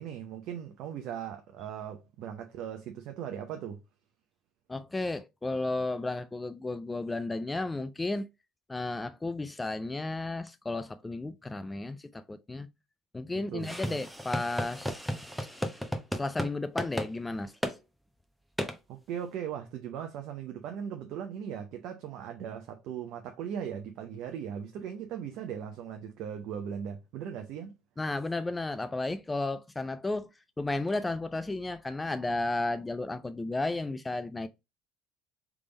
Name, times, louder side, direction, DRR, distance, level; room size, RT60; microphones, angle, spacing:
voice 1, 0.0-3.8 13.5-14.0 18.9-27.7, right 8 dB, 65° right, 0.7 m, -38 dB
voice 2, 4.7-8.3 8.7-12.7 13.1-15.0 16.1-17.5 28.0-30.3 30.6-34.5, left 2 dB, 15° left, 0.4 m, -33 dB
sound 1, 13.6-16.5 16.8-17.1 17.6-17.8 18.6-18.8, equal, ahead, 0.8 m, -34 dB
3.5 x 3.4 x 3.9 m
hypercardioid pair, 75°, 0 cm